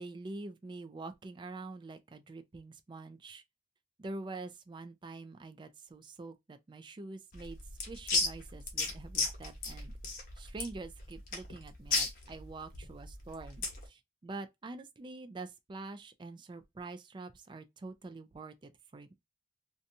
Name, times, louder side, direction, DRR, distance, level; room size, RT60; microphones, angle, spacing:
voice 1, 0.0-3.4 4.0-7.6 7.8-9.9 10.4-19.1, right 3 dB, 25° right, 0.3 m, -46 dB
sound 1, 7.3-13.9, left 3 dB, 55° left, 0.9 m, -35 dB
2.6 x 2.2 x 2.6 m
head